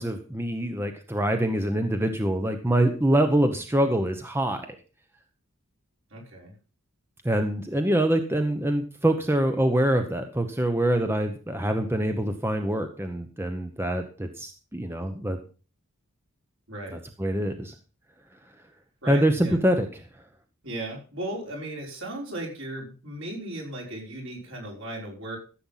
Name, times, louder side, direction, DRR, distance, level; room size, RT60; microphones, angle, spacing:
voice 1, 0.0-4.8 7.2-15.4 16.9-17.7 19.1-20.1, right 1 dB, 10° right, 6 dB, 0.9 m, -25 dB
voice 2, 6.1-6.5 16.7-17.0 19.0-19.6 20.6-25.4, right 1 dB, 60° right, -1 dB, 5.5 m, -36 dB
14.5 x 7.8 x 5.7 m, 0.37 s
head